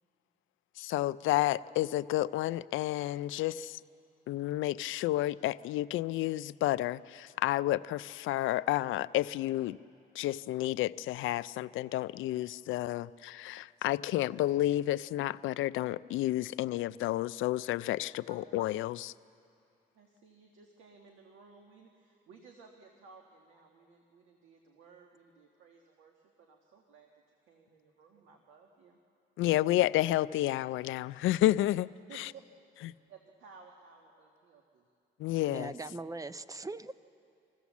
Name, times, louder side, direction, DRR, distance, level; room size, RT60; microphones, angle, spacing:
voice 1, 0.8-3.8 4.3-9.8 10.2-19.1 29.4-31.9 32.2-32.3 32.8-32.9 35.2-35.7, left 15 dB, 80° left, 16 dB, 0.4 m, -30 dB
voice 2, 19.9-27.1 27.5-29.0 32.1-32.4 33.1-34.9 36.5-36.7, right 5 dB, 90° right, 2 dB, 1.5 m, -57 dB
voice 3, 35.5-36.9, right 2 dB, 15° right, 13 dB, 0.6 m, -40 dB
25.0 x 15.5 x 7.2 m, 2.5 s
cardioid pair, 90°, 20 cm